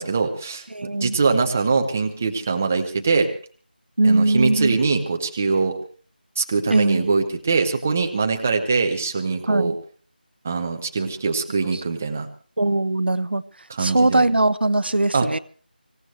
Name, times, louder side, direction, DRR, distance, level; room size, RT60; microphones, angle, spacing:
voice 1, 0.0-3.3 4.0-5.7 6.4-9.7 10.4-12.3 13.7-14.2 15.1-15.3, right 4 dB, 10° right, 0.7 m, -23 dB
voice 2, 0.7-1.2 4.0-4.8 6.7-7.1 9.5-9.8 11.7-11.8 12.6-13.4 13.8-15.4, right 2 dB, 85° right, 0.9 m, -20 dB
25.0 x 16.0 x 3.2 m
figure-of-eight pair, 175°, 5 cm